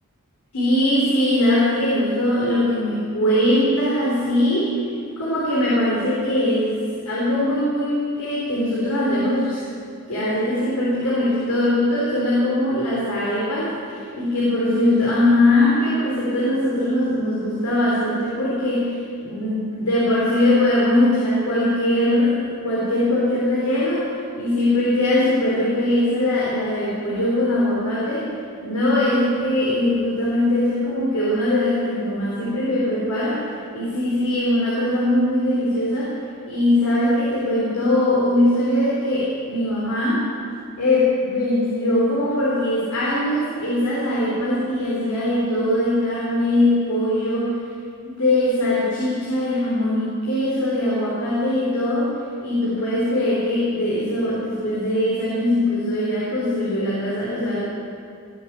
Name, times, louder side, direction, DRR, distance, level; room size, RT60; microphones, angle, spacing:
voice 1, 0.5-4.8 5.2-6.8 7.1-9.6 10.1-24.1 24.4-28.3 28.6-33.5 33.7-36.2 36.5-40.2 40.8-47.5 48.0-52.1 52.4-57.6, left 1 dB, 80° left, -7 dB, 4.1 m, -21 dB
19.5 x 8.1 x 8.8 m, 2.4 s
head